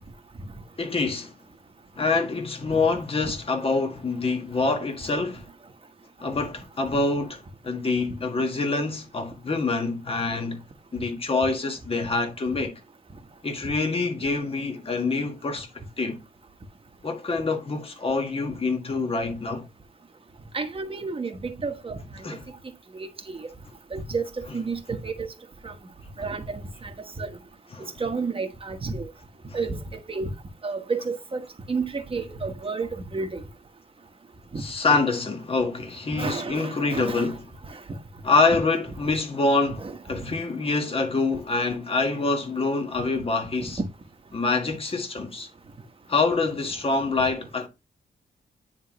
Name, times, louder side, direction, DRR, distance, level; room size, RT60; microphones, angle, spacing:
voice 1, 0.8-1.3 2.0-5.4 6.2-10.6 10.9-12.8 13.4-15.7 16.0-16.2 17.0-19.7 22.2-22.5 24.5-24.7 27.7-27.9 29.5-29.6 34.6-37.5 38.2-43.8 44.3-45.5 46.1-47.7, left 3 dB, 35° left, 1.6 m, -26 dB
voice 2, 20.5-22.0 22.9-23.5 23.9-25.3 25.6-25.7 26.2-26.9 27.2-27.3 28.0-29.1 29.5-30.3 30.6-33.4 34.5-35.0 36.2-37.3 39.7-40.3, right 4 dB, 35° right, 1.3 m, -31 dB
9.6 x 3.6 x 3.0 m
cardioid pair, 90°, 16 cm